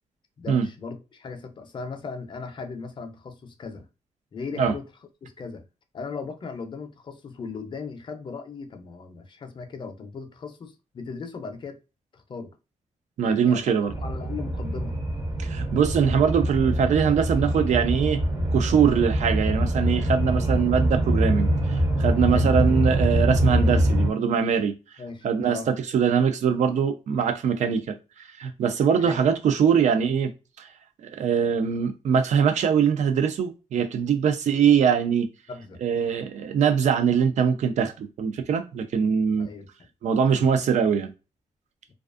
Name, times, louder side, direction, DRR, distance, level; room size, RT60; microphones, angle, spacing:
voice 1, 0.4-3.9 4.3-4.9 5.2-5.6 5.9-11.8 12.1-12.5 13.2-15.0 22.3-22.6 25.0-25.7 29.0-29.2 35.5-35.8 39.4-39.7 40.3-40.5, left 4 dB, 40° left, 0.5 m, -37 dB
voice 2, 13.2-13.9 15.4-18.2 18.5-24.7 25.2-28.0 28.4-30.3 30.6-30.7 31.1-35.3 35.8-39.5 40.0-41.1, right 7 dB, 75° right, 0.4 m, -22 dB
sound 1, 13.9-24.1, right 1 dB, 30° right, 0.5 m, -24 dB
2.4 x 2.3 x 2.4 m
wide cardioid pair, 140°, 12 cm